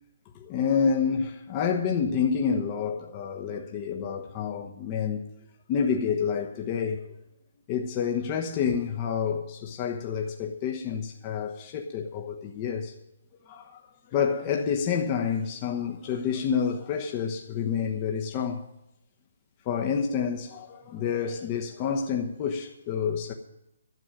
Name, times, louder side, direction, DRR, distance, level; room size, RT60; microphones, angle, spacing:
voice 1, 0.3-5.2 5.7-7.0 7.7-12.9 13.5-13.8 14.1-18.6 19.7-23.3, left 6 dB, 30° left, 1.1 m, -28 dB
12.0 x 7.7 x 9.0 m
figure-of-eight pair, 140°, 0 cm